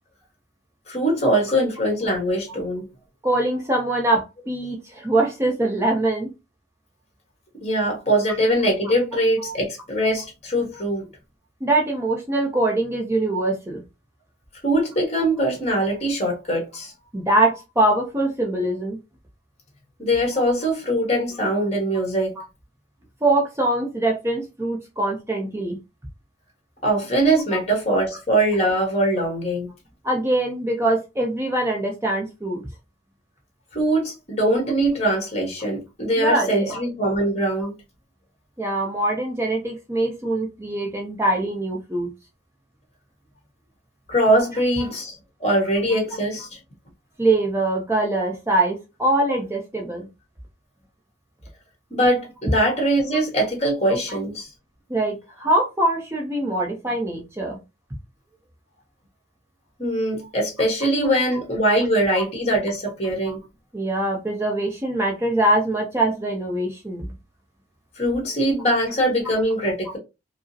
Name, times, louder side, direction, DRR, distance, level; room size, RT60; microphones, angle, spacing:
voice 1, 0.9-2.9 7.6-11.1 14.6-16.9 20.0-22.3 26.8-29.7 33.7-37.7 44.1-46.6 51.9-54.5 59.8-63.4 68.0-70.0, right 1 dB, 35° left, 1.4 m, -22 dB
voice 2, 3.2-6.3 11.6-13.8 17.1-19.0 22.4-22.5 23.2-25.8 30.0-32.6 36.2-36.8 38.6-42.1 44.8-44.9 47.2-50.1 54.9-57.6 62.1-62.2 63.2-63.3 63.7-67.1, right 2 dB, 15° right, 0.5 m, -23 dB
4.7 x 2.0 x 2.7 m
head